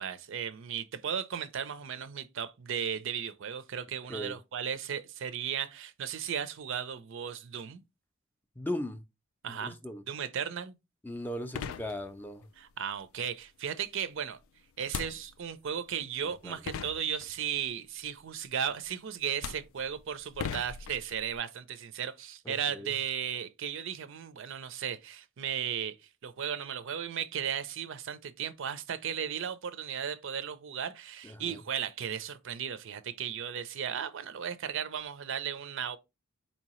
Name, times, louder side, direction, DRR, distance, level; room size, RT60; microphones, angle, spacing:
voice 1, 0.0-7.8 9.4-9.8 10.1-10.7 12.6-14.4 14.8-25.9 26.2-36.0, right 8 dB, 70° right, 0.5 m, -35 dB
voice 2, 8.6-9.0 9.5-10.0 11.0-12.4 16.2-16.6 22.5-22.9 31.2-31.6, left 1 dB, 10° left, 0.4 m, -38 dB
sound 1, 11.1-11.2 11.5-12.5 14.8-15.7 16.3-16.4 16.7-17.6 18.7-18.9 19.3-21.4, left 7 dB, 75° left, 0.3 m, -40 dB
4.4 x 2.8 x 3.0 m
head